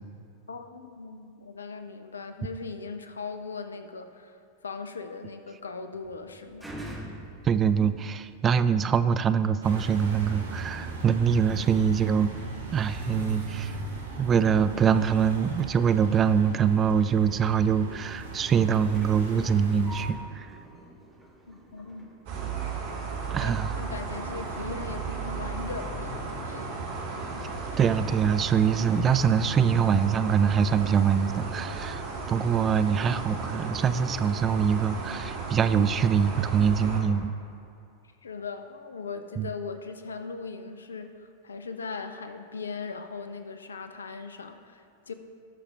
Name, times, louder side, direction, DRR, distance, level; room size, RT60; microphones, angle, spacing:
voice 1, 0.5-6.7 21.5-22.1 23.4-26.8 38.2-45.1, left 4 dB, 70° left, 8 dB, 0.6 m, -39 dB
sound 1, 5.9-23.3 23.8-23.9, right 1 dB, 5° right, 1.5 m, -48 dB
voice 2, 7.4-12.3 12.7-13.8 14.2-20.5 23.3-23.8 27.8-32.0 32.3-37.3 39.4-39.5, right 7 dB, 25° right, 12 dB, 0.3 m, -24 dB
sound 2, 9.6-20.1, right 3 dB, 70° right, 1.2 m, -38 dB
sound 3, 22.3-37.0, right 4 dB, 50° right, 1.5 m, -35 dB
18.5 x 6.4 x 2.4 m, 2.5 s
figure-of-eight pair, 90°, 0 cm